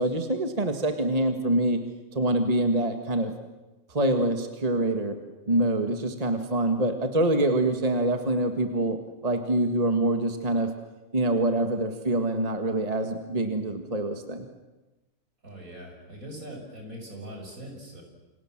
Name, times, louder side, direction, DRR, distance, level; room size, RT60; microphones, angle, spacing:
voice 1, 0.0-1.8 2.1-3.3 3.9-5.2 5.5-9.0 9.2-10.7 11.1-14.5, right 1 dB, 25° right, 6 dB, 2.0 m, -25 dB
voice 2, 15.4-18.0, right 1 dB, 75° right, 2 dB, 7.0 m, -41 dB
28.5 x 26.0 x 7.5 m, 1.1 s
omnidirectional pair, 1.5 m